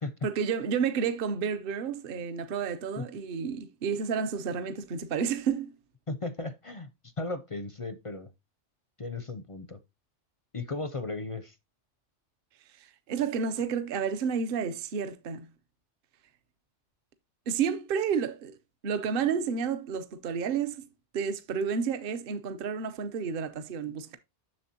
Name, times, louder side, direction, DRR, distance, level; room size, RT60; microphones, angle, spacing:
voice 1, 0.2-5.7 12.8-15.5 17.5-18.6 18.8-20.9 21.1-24.2, right 6 dB, 55° right, 0.9 m, -30 dB
voice 2, 6.1-8.3 9.0-9.8 10.5-11.6, left 3 dB, 40° left, 0.5 m, -36 dB
7.5 x 6.7 x 2.7 m
omnidirectional pair, 1.2 m